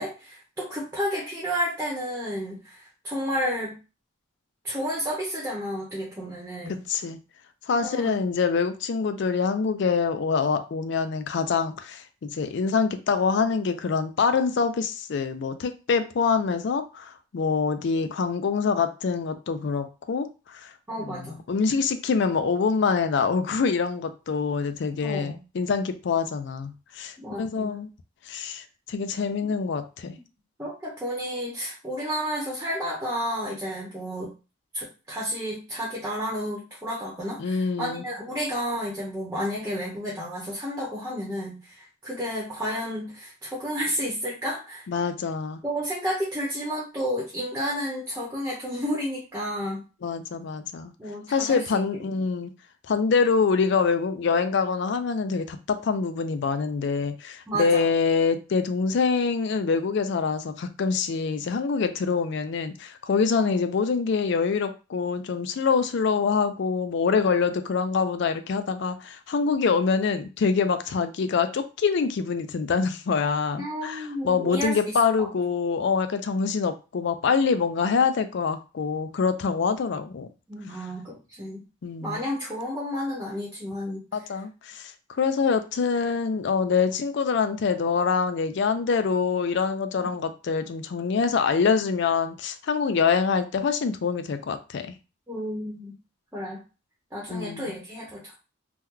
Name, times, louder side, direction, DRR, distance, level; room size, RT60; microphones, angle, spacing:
voice 1, 0.0-3.8 4.6-6.8 7.8-8.2 20.9-21.4 25.0-25.4 27.2-27.7 30.1-30.2 30.6-34.3 34.7-44.8 45.6-49.8 51.0-51.8 57.5-57.9 63.3-63.5 73.6-75.3 80.5-81.6 82.0-84.0 90.0-90.1 95.3-96.0 96.3-96.6 97.1-98.3, equal, 10° right, 0.8 m, -31 dB
voice 2, 6.9-7.2 7.7-20.7 21.0-27.9 28.3-30.2 37.4-38.0 44.9-45.6 50.0-50.9 51.3-52.5 52.9-80.3 81.8-82.2 84.1-84.9 85.2-94.9 97.3-97.7, left 5 dB, 55° left, 0.3 m, -25 dB
2.9 x 2.2 x 3.7 m
head